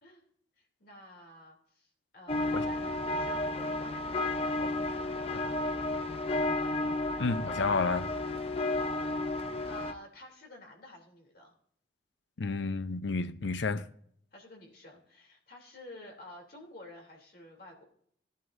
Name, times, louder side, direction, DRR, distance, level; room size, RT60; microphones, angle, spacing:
voice 1, 0.6-4.3 8.7-9.3 9.7-11.5 14.3-17.8, left 1 dB, 55° left, 3.0 m, -51 dB
sound 1, 2.3-9.9, left 2 dB, 30° left, 0.7 m, -32 dB
voice 2, 7.2-8.1 12.4-13.9, left 4 dB, 80° left, 0.7 m, -31 dB
16.5 x 11.0 x 2.6 m
head